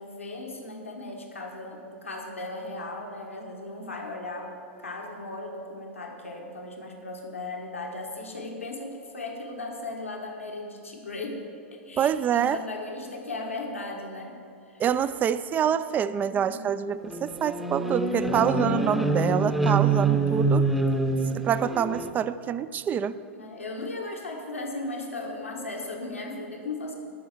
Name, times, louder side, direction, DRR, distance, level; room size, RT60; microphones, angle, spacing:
voice 1, 0.0-11.4 11.7-14.4 14.7-14.8 16.2-16.6 23.4-27.0, left 2 dB, 85° left, 1 dB, 1.4 m, -37 dB
voice 2, 12.0-12.6 14.8-20.7 21.3-23.2, right 9 dB, 25° right, 14 dB, 0.3 m, -26 dB
sound 1, 17.1-22.1, right 3 dB, ahead, 0.8 m, -25 dB
12.5 x 5.4 x 7.8 m, 2.4 s
figure-of-eight pair, 100°, 7 cm